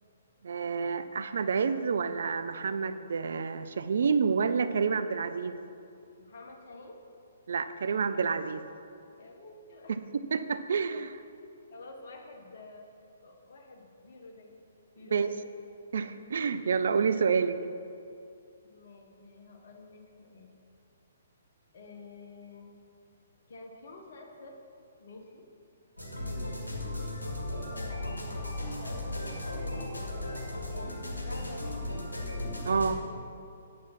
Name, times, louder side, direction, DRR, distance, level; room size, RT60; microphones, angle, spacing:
voice 1, 0.4-5.6 7.5-8.6 10.1-11.1 15.1-15.3 15.9-17.6 32.6-33.0, right 5 dB, 60° right, 11 dB, 0.4 m, -28 dB
voice 2, 6.2-7.0 9.2-10.0 10.8-11.0 11.7-14.6 15.0-15.4 18.6-20.5 21.7-22.8 23.5-24.5 25.0-25.5 26.2-26.8 28.1-29.9 30.7-32.0 33.0-33.2, left 2 dB, 50° left, 2 dB, 1.4 m, -49 dB
sound 1, 26.0-32.9, left 1 dB, 75° left, 1.7 m, -36 dB
9.3 x 6.0 x 5.9 m, 2.5 s
figure-of-eight pair, 125°, 0 cm